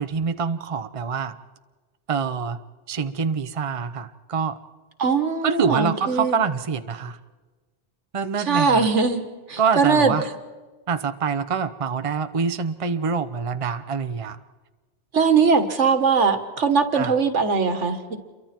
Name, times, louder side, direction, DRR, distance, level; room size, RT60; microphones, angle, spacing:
voice 1, 0.0-1.4 2.1-2.6 2.9-4.6 5.4-7.2 8.1-8.9 9.6-10.3 10.9-14.4 16.9-17.1, right 6 dB, 30° right, 10 dB, 0.8 m, -25 dB
voice 2, 5.0-6.4 8.5-9.2 9.5-10.1 15.1-18.2, right 5 dB, 80° right, 8 dB, 2.0 m, -20 dB
28.5 x 23.5 x 4.5 m, 1.3 s
omnidirectional pair, 1.2 m